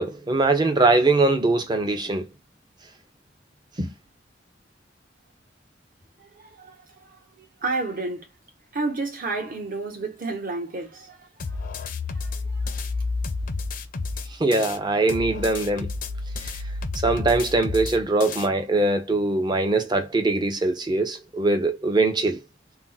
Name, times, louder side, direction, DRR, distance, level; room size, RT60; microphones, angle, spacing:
voice 1, 0.0-2.3 3.8-3.9 14.4-15.9 17.0-22.4, right 2 dB, 25° right, 0.5 m, -22 dB
voice 2, 6.2-6.8 7.1-8.3 8.7-11.6 12.1-12.9, right 3 dB, 50° right, 0.9 m, -31 dB
sound 1, 11.4-14.8 15.1-18.5, left 3 dB, 50° left, 0.4 m, -30 dB
2.4 x 2.0 x 3.8 m
head